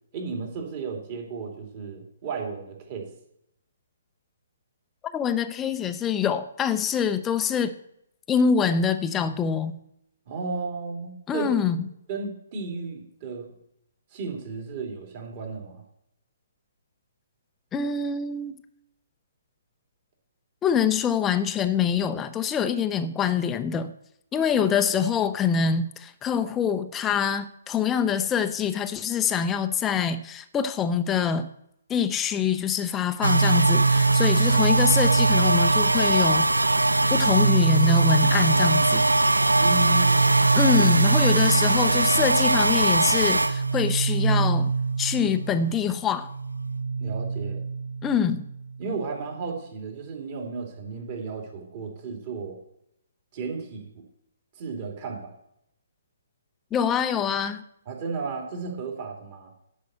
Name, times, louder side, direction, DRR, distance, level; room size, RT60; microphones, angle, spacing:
voice 1, 0.1-3.1 10.3-11.6 12.1-13.5 14.1-15.8 39.5-40.4 40.7-40.8 47.0-47.6 48.8-52.6 53.3-53.9 54.6-55.3 57.9-59.5, right 4 dB, 35° right, 2.8 m, -34 dB
voice 2, 5.1-7.7 8.3-9.8 11.3-11.8 17.7-18.6 20.6-23.9 24.3-31.5 31.9-36.7 37.1-39.1 40.6-44.7 45.0-46.3 48.0-48.5 56.7-57.6, left 7 dB, 15° left, 0.6 m, -25 dB
sound 1, 33.2-45.9 46.2-48.7, right 3 dB, 80° right, 0.5 m, -21 dB
10.5 x 5.5 x 8.1 m
figure-of-eight pair, 130°, 0 cm